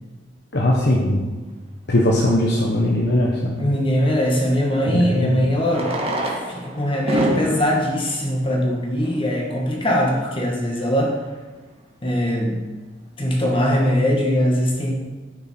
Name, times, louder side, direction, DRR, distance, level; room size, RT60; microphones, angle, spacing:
voice 1, 0.5-1.2 1.9-3.7 4.9-5.0, left 1 dB, 65° left, -2 dB, 1.2 m, -19 dB
voice 2, 3.6-5.9 6.5-11.1 12.0-12.6 13.2-14.9, equal, 30° left, -1 dB, 1.7 m, -21 dB
Fireworks, 5.7-9.3 10.1-10.2 10.4-10.5 10.7-10.8 11.3-11.5, right 1 dB, 30° right, 1.7 m, -28 dB
10.5 x 9.4 x 4.5 m, 1.3 s
head